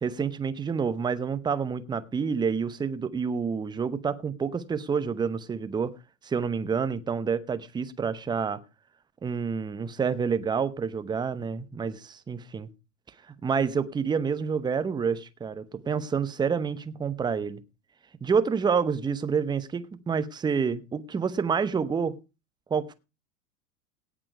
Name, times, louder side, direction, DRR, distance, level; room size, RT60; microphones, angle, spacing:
voice 1, 0.0-6.0 6.2-8.6 9.2-12.7 13.4-17.6 18.2-22.2 22.7-22.9, right 6 dB, 10° right, 0.8 m, -28 dB
17.5 x 6.2 x 4.6 m
hypercardioid pair, 100°, 44 cm